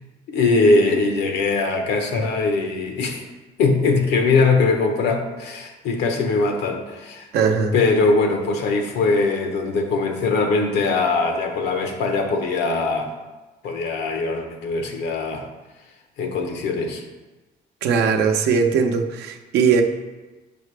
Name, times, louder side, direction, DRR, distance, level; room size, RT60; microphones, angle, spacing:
voice 1, 0.3-3.2 3.6-7.3 7.7-13.1 13.6-15.5 16.2-17.0, left 3 dB, 80° left, 4 dB, 1.0 m, -21 dB
voice 2, 7.3-7.7 17.8-19.8, right 6 dB, 80° right, 5 dB, 0.7 m, -19 dB
6.8 x 4.9 x 3.3 m, 1.2 s
cardioid pair, 110°, 17 cm